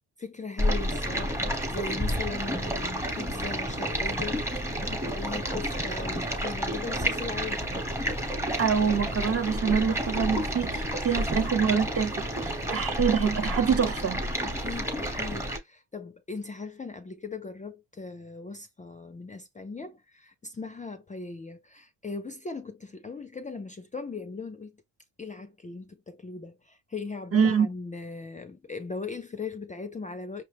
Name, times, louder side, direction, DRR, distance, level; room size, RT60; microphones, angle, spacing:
voice 1, 0.2-7.7 11.1-11.4 14.4-24.7 25.2-30.4, left 4 dB, 20° left, 0.4 m, -39 dB
Stream, 0.6-15.6, equal, 5° right, 1.0 m, -30 dB
voice 2, 8.6-14.2 27.3-27.7, right 6 dB, 35° right, 0.7 m, -25 dB
5.7 x 2.1 x 3.3 m
cardioid pair, 115°, 39 cm